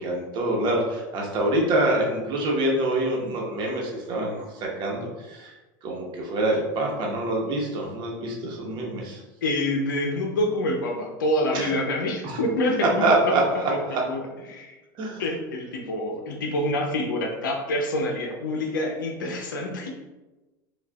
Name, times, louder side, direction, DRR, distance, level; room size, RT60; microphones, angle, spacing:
voice 1, 0.0-5.5 5.8-9.2 11.5-11.7 12.2-12.4 12.8-14.0 14.9-15.2, right 2 dB, 45° right, -1 dB, 1.0 m, -25 dB
voice 2, 9.4-13.8 14.1-14.2 14.5-14.7 15.2-19.9, left 1 dB, 90° left, 2 dB, 0.6 m, -27 dB
4.7 x 2.4 x 2.3 m, 1.1 s
hypercardioid pair, 100°, 10 cm